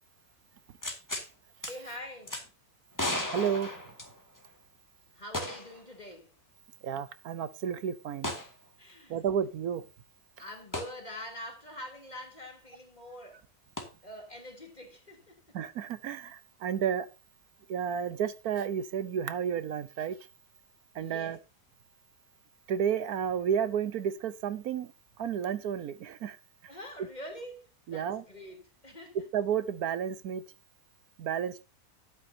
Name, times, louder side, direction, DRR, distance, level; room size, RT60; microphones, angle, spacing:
sound 1, 0.8-1.3 1.6-1.7 2.3-2.4 3.0-4.5 5.3-5.8 6.1-6.2 8.2-8.5 10.7-10.9 13.8-13.9, left 1 dB, 10° left, 2.0 m, -34 dB
voice 1, 1.7-2.4 5.1-6.3 8.8-9.2 10.4-13.4 14.0-15.6 21.0-21.4 26.7-29.3, left 1 dB, 30° left, 3.3 m, -45 dB
voice 2, 3.3-3.7 6.8-8.3 9.1-9.8 15.5-17.1 17.7-20.2 20.9-21.4 22.7-24.9 25.2-26.4 27.9-28.2 29.3-30.4 31.2-31.6, right 8 dB, 75° right, 1.3 m, -31 dB
12.5 x 8.8 x 2.8 m
omnidirectional pair, 1.6 m